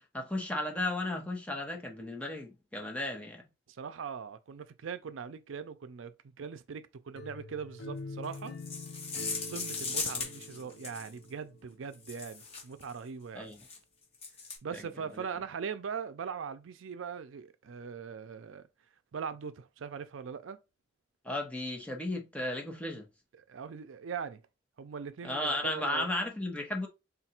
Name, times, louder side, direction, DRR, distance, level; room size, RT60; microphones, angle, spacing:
voice 1, 0.1-3.4 13.3-13.6 14.7-14.8 21.2-23.1 25.2-26.9, left 1 dB, 5° left, 0.8 m, -34 dB
voice 2, 3.8-8.5 9.5-13.5 14.6-18.6 19.1-20.6 23.5-24.4 24.8-26.1, right 6 dB, 90° right, 0.5 m, -41 dB
sound 1, 7.1-12.0, left 2 dB, 60° left, 0.4 m, -45 dB
sound 2, 8.2-11.2 11.9-12.9 13.5-13.8 14.1-14.6, left 4 dB, 35° left, 1.3 m, -38 dB
3.8 x 2.4 x 4.3 m
head